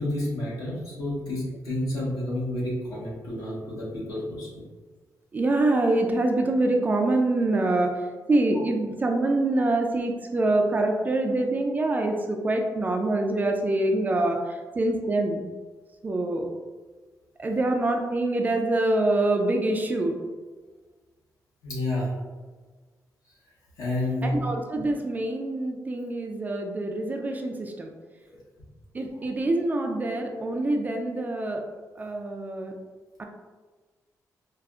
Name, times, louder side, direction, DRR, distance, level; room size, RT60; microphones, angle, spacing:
voice 1, 0.0-4.6 7.5-7.6 21.6-22.1 23.8-24.4, left 1 dB, 70° left, -6 dB, 1.4 m, -30 dB
voice 2, 5.3-15.5 16.0-16.5 17.4-20.2 24.2-27.9 28.9-31.6 32.0-32.7 33.2-33.3, right 2 dB, 25° right, 3 dB, 0.3 m, -25 dB
4.8 x 2.4 x 2.3 m, 1.4 s
wide cardioid pair, 145°, 6 cm